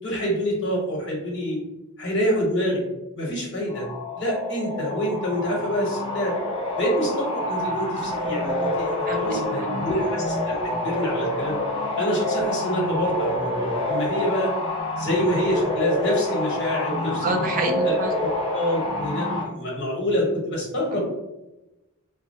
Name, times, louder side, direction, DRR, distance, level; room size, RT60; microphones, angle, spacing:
voice 1, 0.0-1.6 2.0-2.8 3.1-3.9 4.2-6.3 6.8-11.6 11.9-14.5 15.0-17.2 17.8-21.0, equal, 55° left, -3 dB, 1.1 m, -26 dB
sound 1, 3.7-19.4, left 1 dB, 25° left, 0.7 m, -27 dB
voice 2, 9.1-9.8 17.2-18.1 20.9-21.0, right 2 dB, 40° right, 3 dB, 0.4 m, -27 dB
2.6 x 2.0 x 2.7 m, 0.98 s
head